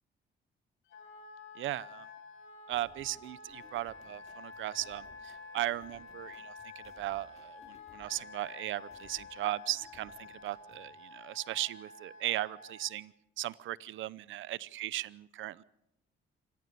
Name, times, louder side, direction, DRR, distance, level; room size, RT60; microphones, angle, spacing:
Wind instrument woodwind instrument, 0.9-12.9, left 4 dB, 85° left, 3.6 m, -50 dB
voice 1, 1.5-2.1 2.7-15.6, right 14 dB, 80° right, 20 dB, 0.7 m, -37 dB
sound 1, 2.7-10.9, left 3 dB, 35° left, 5.0 m, -62 dB
26.5 x 17.5 x 6.8 m, 0.82 s
cardioid pair, 90°, 20 cm